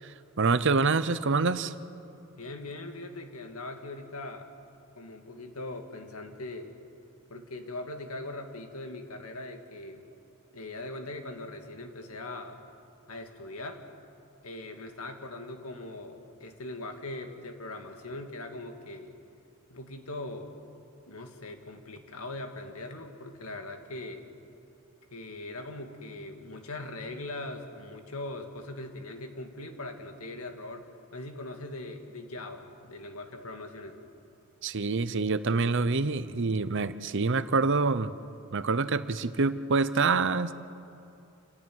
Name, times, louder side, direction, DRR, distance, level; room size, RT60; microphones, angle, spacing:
voice 1, 0.4-1.7 34.6-38.1 38.5-40.5, right 4 dB, 55° right, 14 dB, 0.8 m, -26 dB
voice 2, 2.4-4.5 5.0-6.7 7.3-10.0 10.5-12.6 13.1-13.8 14.4-19.2 19.7-20.5 21.1-24.2 25.1-30.9 31.1-34.1, left 2 dB, 85° left, 5 dB, 2.2 m, -40 dB
27.5 x 15.5 x 9.5 m, 2.6 s
head